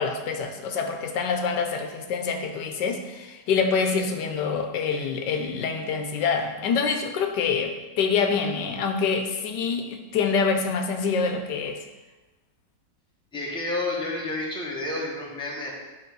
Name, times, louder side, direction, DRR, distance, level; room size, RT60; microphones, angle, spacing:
voice 1, 0.0-11.8, left 5 dB, 85° left, 5 dB, 1.3 m, -26 dB
voice 2, 13.3-15.7, left 2 dB, 5° left, -4 dB, 1.1 m, -30 dB
9.0 x 3.5 x 4.6 m, 1.1 s
omnidirectional pair, 1.9 m